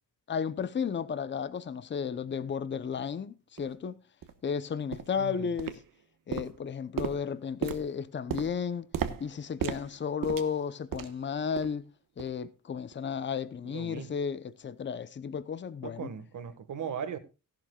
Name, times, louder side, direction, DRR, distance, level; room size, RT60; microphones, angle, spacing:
voice 1, 0.3-4.0 4.4-5.8 6.3-8.9 9.2-11.8 12.2-16.1, left 6 dB, 35° left, 0.8 m, -33 dB
sound 1, 2.9-3.0 3.6-3.7 4.2-4.4 4.9-5.2 5.6-6.0 6.3-11.3 11.6-11.8 12.2-12.4 12.9-13.0, right 8 dB, 85° right, 1.3 m, -37 dB
voice 2, 5.2-5.5 13.6-14.1 15.8-17.2, right 7 dB, 65° right, 1.7 m, -38 dB
17.0 x 11.5 x 2.4 m
wide cardioid pair, 175°, 33 cm